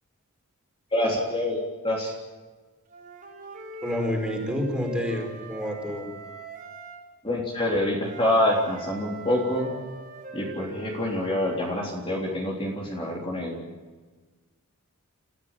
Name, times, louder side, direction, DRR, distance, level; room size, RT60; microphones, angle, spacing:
voice 1, 0.9-2.1 7.2-9.8 10.3-13.6, left 1 dB, 25° left, -2 dB, 3.5 m, -26 dB
Wind instrument woodwind instrument, 2.9-7.0 8.1-12.0, right 3 dB, 40° right, 4.4 m, -41 dB
voice 2, 3.8-6.1, left 1 dB, 5° right, 1 dB, 4.7 m, -29 dB
30.0 x 15.0 x 7.5 m, 1.3 s
head